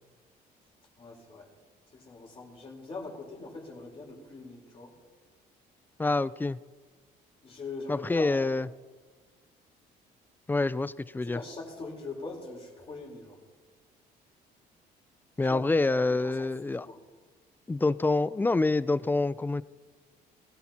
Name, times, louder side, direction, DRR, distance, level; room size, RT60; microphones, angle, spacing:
voice 1, 1.0-1.5 1.9-5.0 7.4-8.6 11.2-13.4 15.4-16.4 16.8-17.0, left 3 dB, 35° left, -2 dB, 3.9 m, -42 dB
voice 2, 6.0-6.6 7.9-8.7 10.5-11.4 15.4-16.9 17.7-19.6, left 3 dB, 10° left, 17 dB, 0.4 m, -26 dB
21.0 x 15.0 x 2.9 m, 1.4 s
cardioid pair, 110°, 17 cm